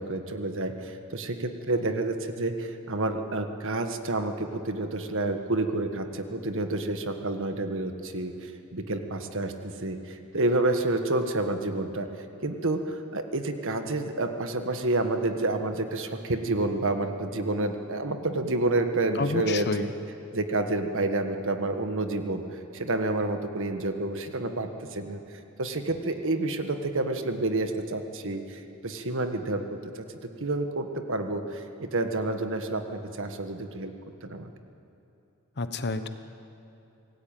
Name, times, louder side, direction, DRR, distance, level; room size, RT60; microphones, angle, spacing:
voice 1, 0.0-12.1 12.4-19.9 20.3-22.4 22.7-25.2 25.6-30.0 30.4-33.9 34.2-34.5, right 2 dB, 60° right, 6 dB, 1.7 m, -29 dB
voice 2, 19.2-19.8 35.6-36.1, left 3 dB, 50° left, 10 dB, 1.0 m, -29 dB
26.0 x 17.5 x 9.2 m, 2.8 s
head